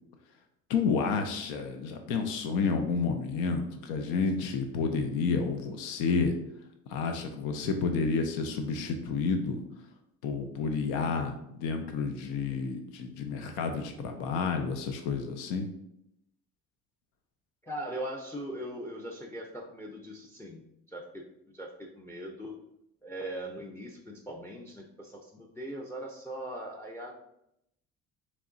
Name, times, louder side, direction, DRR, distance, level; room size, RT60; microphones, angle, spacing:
voice 1, 0.7-6.3 6.9-9.6 10.2-15.7, left 5 dB, 90° left, 5 dB, 0.6 m, -30 dB
voice 2, 17.6-20.6 20.9-21.3 21.5-22.6 23.0-27.1, right 1 dB, 10° left, 1 dB, 0.5 m, -40 dB
3.5 x 3.1 x 3.8 m, 0.78 s
cardioid pair, 110°, 29 cm